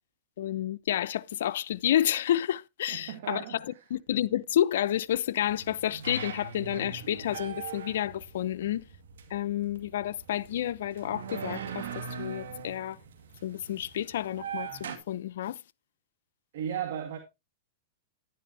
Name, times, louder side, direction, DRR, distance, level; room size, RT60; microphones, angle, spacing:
voice 1, 0.4-8.9 9.3-13.0 13.4-15.6, left 11 dB, 75° left, 0.6 m, -30 dB
voice 2, 2.9-3.9 16.5-17.2, right 9 dB, 65° right, 2.1 m, -36 dB
sound 1, 5.4-15.0, right 6 dB, 85° right, 2.1 m, -41 dB
11.0 x 10.5 x 2.8 m
hypercardioid pair, 130°, 0 cm